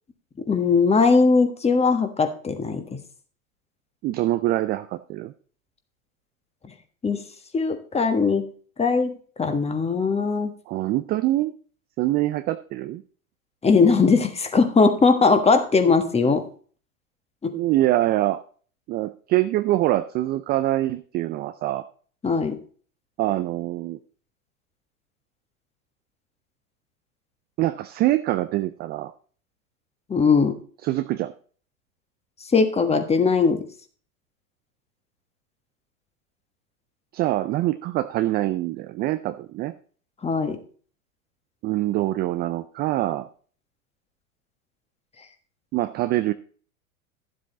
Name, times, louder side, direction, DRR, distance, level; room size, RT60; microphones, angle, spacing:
voice 1, 0.5-2.8 7.0-7.2 7.5-8.4 8.8-10.5 13.6-16.4 17.4-17.5 22.2-22.6 30.1-30.5 32.5-33.6 40.2-40.6, left 4 dB, 15° left, 8 dB, 1.4 m, -20 dB
voice 2, 4.0-5.3 10.7-11.5 12.0-13.0 17.5-18.4 18.9-21.8 23.2-24.0 27.6-29.1 30.8-31.3 37.1-39.7 41.6-43.3 45.7-46.3, right 15 dB, 25° right, 11 dB, 0.4 m, -24 dB
12.0 x 7.6 x 3.9 m, 0.44 s
hypercardioid pair, 95°, 42 cm